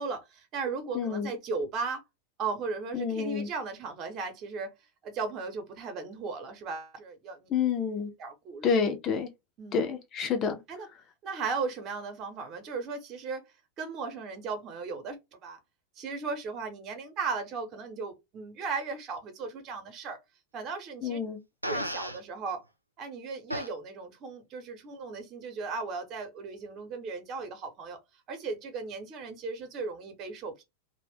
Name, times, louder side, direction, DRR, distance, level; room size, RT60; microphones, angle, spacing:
voice 1, 0.0-2.0 2.4-4.7 5.0-7.5 8.2-8.7 9.6-9.9 10.7-10.9 11.2-13.5 13.8-15.6 16.0-20.2 20.5-21.2 21.7-22.6 23.0-28.0 28.3-30.6, right 4 dB, 35° right, 0.9 m, -36 dB
voice 2, 0.9-1.3 2.9-3.5 7.5-8.1 8.6-9.3 9.7-10.5 21.0-21.4, left 6 dB, 30° left, 0.7 m, -28 dB
Fart, 21.6-22.2 23.5-23.7, equal, 90° right, 0.4 m, -33 dB
2.5 x 2.2 x 3.5 m
figure-of-eight pair, 90°, 0 cm